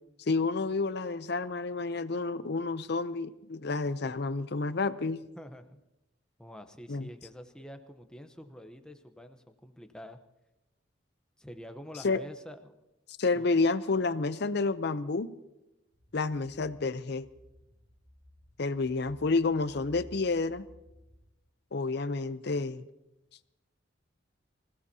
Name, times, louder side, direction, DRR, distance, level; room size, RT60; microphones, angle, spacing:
voice 1, 0.2-5.2 6.9-7.1 12.0-12.2 13.2-15.3 16.1-17.3 18.6-20.6 21.7-22.9, left 3 dB, 60° left, 13 dB, 0.6 m, -29 dB
voice 2, 5.4-5.8 6.4-10.2 11.4-12.7 13.3-13.7, equal, 5° left, 6 dB, 0.9 m, -47 dB
sound 1, 15.9-21.3, left 1 dB, 90° right, 2.2 m, -56 dB
25.0 x 16.5 x 2.8 m, 0.96 s
head